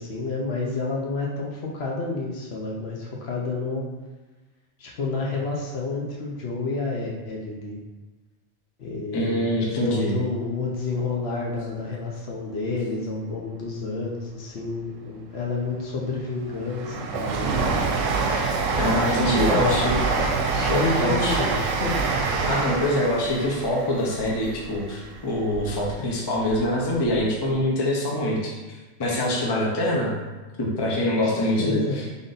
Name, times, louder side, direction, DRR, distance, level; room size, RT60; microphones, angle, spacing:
voice 1, 0.0-3.8 4.8-7.8 8.8-17.6 19.1-19.8 20.2-22.0 31.1-32.0, left 3 dB, 60° left, -2 dB, 0.9 m, -30 dB
voice 2, 9.1-10.2 18.8-20.0 20.7-21.4 22.5-30.1 30.6-32.0, left 1 dB, 30° left, -3 dB, 0.5 m, -24 dB
Train, 15.7-25.9 26.3-27.3 27.5-27.6, right 4 dB, 80° right, 0.9 m, -26 dB
3.6 x 2.5 x 3.8 m, 1.2 s
omnidirectional pair, 1.3 m